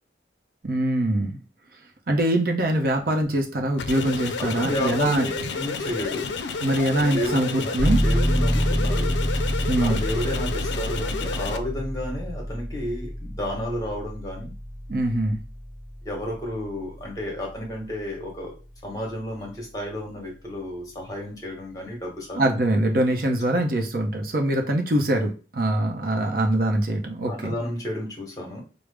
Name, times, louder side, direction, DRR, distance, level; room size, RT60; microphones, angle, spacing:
voice 1, 0.6-1.4 2.1-5.3 6.6-8.0 9.7-10.0 14.9-15.4 22.3-27.5, right 1 dB, 50° right, 3 dB, 0.6 m, -23 dB
sound 1, 3.8-11.6, left 4 dB, 75° left, 0.4 m, -31 dB
voice 2, 4.4-6.3 6.8-6.9 7.1-9.2 9.8-14.5 16.0-18.6 18.8-22.4 22.7-22.8 27.3-28.6, left 1 dB, 20° left, 0 dB, 1.1 m, -32 dB
sound 2, 7.8-18.3, equal, 20° right, 1.1 m, -27 dB
4.9 x 2.0 x 3.3 m, 0.33 s
head